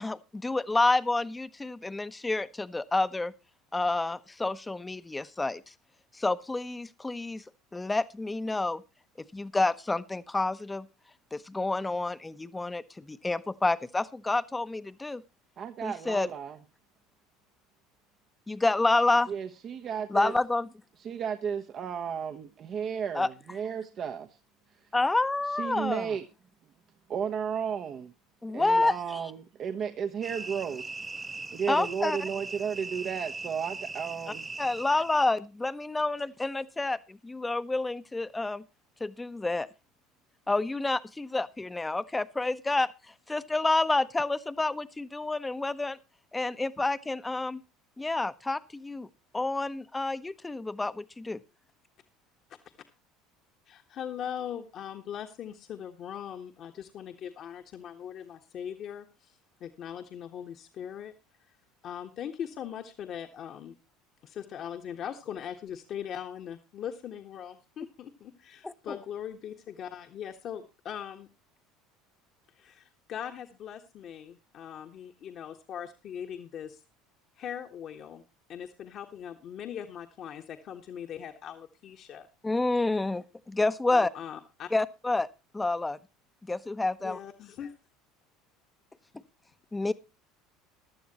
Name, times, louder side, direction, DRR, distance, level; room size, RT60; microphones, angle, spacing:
voice 1, 0.0-3.3 3.7-5.7 6.1-7.4 7.7-8.8 9.3-10.9 11.3-15.2 15.8-16.3 18.5-19.3 20.1-20.7 23.1-23.3 24.9-26.1 28.4-29.2 31.7-32.2 34.6-38.6 39.0-39.7 40.5-42.9 43.3-46.0 46.3-47.6 48.0-49.1 49.3-51.4 68.6-68.9 82.4-84.1 84.7-85.3 85.5-86.0 86.5-87.2 89.7-89.9, left 2 dB, 15° left, 0.9 m, -29 dB
voice 2, 15.6-16.6 19.3-20.3 21.0-24.3 25.6-26.2 27.1-28.1 28.5-30.8 31.5-34.5, right 7 dB, 45° right, 1.1 m, -33 dB
sound 1, 30.2-35.3, right 3 dB, 20° right, 1.0 m, -40 dB
voice 3, 53.7-61.1 61.8-63.7 64.2-71.3 72.6-76.8 77.4-78.2 78.5-82.3 83.9-84.7 87.0-87.7, left 9 dB, 50° left, 1.5 m, -40 dB
15.5 x 11.5 x 3.0 m
hypercardioid pair, 70°, 0 cm